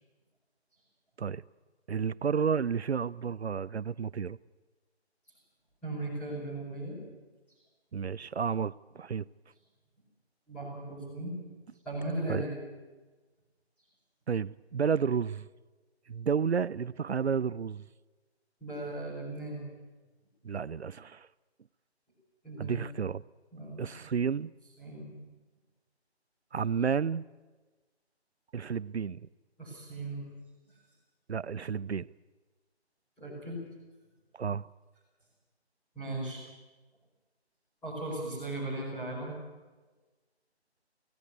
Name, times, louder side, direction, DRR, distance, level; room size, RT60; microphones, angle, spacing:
voice 1, 1.9-4.4 7.9-9.2 12.3-12.4 14.3-15.5 16.1-17.8 20.4-21.3 22.6-23.2 23.8-24.5 26.5-27.2 28.5-29.2 31.3-32.1 34.4-34.7, right 6 dB, 75° right, 0.6 m, -31 dB
voice 2, 5.8-7.0 10.5-11.4 11.8-12.6 18.6-19.6 22.4-22.8 23.5-23.9 24.8-25.1 29.6-30.3 33.2-33.6 35.9-36.4 37.8-39.3, right 2 dB, 5° left, 4.7 m, -37 dB
17.0 x 16.0 x 9.5 m
figure-of-eight pair, 170°, 33 cm